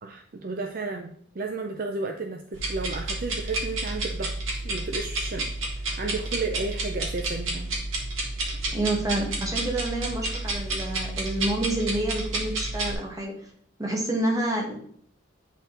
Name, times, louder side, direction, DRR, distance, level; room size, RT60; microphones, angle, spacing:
voice 1, 0.0-4.3 4.6-5.5 5.8-7.7, right 3 dB, 45° right, 3 dB, 0.5 m, -33 dB
sound 1, 2.5-12.9, right 2 dB, 75° right, 1.9 m, -30 dB
voice 2, 8.7-13.3 13.8-14.7, right 1 dB, 15° right, -1 dB, 1.4 m, -28 dB
8.3 x 4.2 x 3.8 m, 0.62 s
head